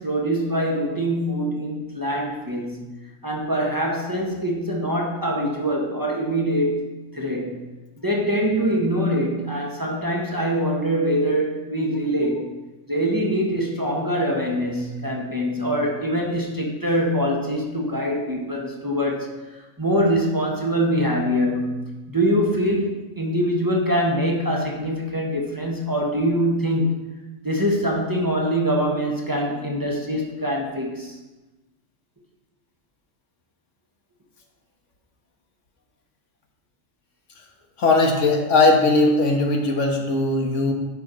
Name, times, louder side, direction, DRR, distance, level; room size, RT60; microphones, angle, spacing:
voice 1, 0.0-2.9 3.2-7.6 8.0-12.5 12.9-19.3 19.8-26.9 27.4-31.1, equal, 20° right, -2 dB, 1.0 m, -24 dB
voice 2, 37.8-40.7, left 2 dB, 90° left, 1 dB, 1.5 m, -19 dB
10.5 x 5.0 x 3.9 m, 1.1 s
omnidirectional pair, 1.2 m